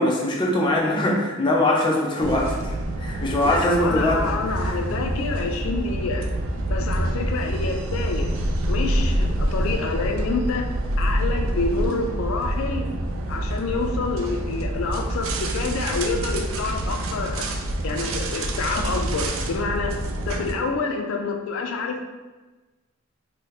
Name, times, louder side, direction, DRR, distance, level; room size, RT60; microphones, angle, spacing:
voice 1, 0.0-2.7 3.0-4.2, left 1 dB, 25° left, -2 dB, 0.5 m, -21 dB
sound 1, 2.2-20.5, right 1 dB, 85° right, 0.4 m, -26 dB
voice 2, 3.4-6.3 6.7-8.3 8.7-10.7 11.0-12.8 13.3-17.5 17.8-20.0 20.3-22.0, left 3 dB, 80° left, 3 dB, 0.4 m, -27 dB
2.8 x 2.1 x 3.9 m, 1.2 s
head